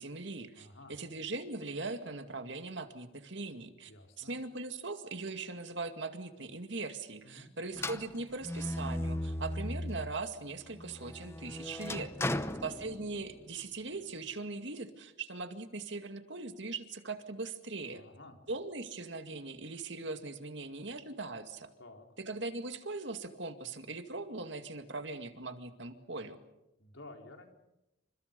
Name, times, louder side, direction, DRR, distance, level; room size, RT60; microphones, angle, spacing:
voice 1, 0.0-3.9 4.2-12.1 12.6-18.0 18.5-21.7 22.2-26.4, right 3 dB, 60° right, 7 dB, 2.2 m, -40 dB
voice 2, 0.6-1.0 3.9-4.3 7.2-7.5 12.2-12.5 17.9-18.4 21.8-22.1 26.8-27.5, left 2 dB, 75° left, 3 dB, 4.3 m, -52 dB
sound 1, 7.7-10.2 10.6-13.4, left 1 dB, 15° left, 0.9 m, -37 dB
29.0 x 26.5 x 5.4 m, 0.90 s
head